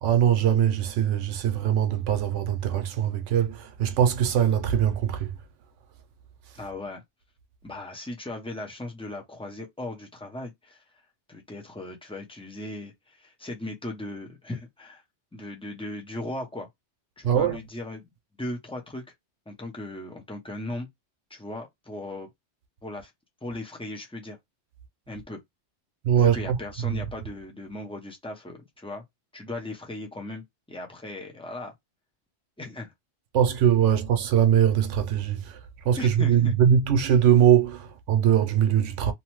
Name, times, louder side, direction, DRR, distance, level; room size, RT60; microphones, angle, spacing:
voice 1, 0.0-5.4 17.2-17.6 26.0-26.6 26.8-27.0 33.3-35.6 35.8-39.1, right 9 dB, 80° right, 0.9 m, -22 dB
voice 2, 6.5-7.0 7.6-10.8 11.3-15.0 15.3-16.7 17.2-18.1 18.4-19.0 19.5-20.9 21.3-22.3 22.8-23.1 23.4-24.4 25.1-25.4 26.2-29.0 29.3-30.4 30.7-31.7 32.6-32.9 36.0-36.5, left 2 dB, 10° left, 0.4 m, -37 dB
2.9 x 2.0 x 3.0 m
omnidirectional pair, 1.2 m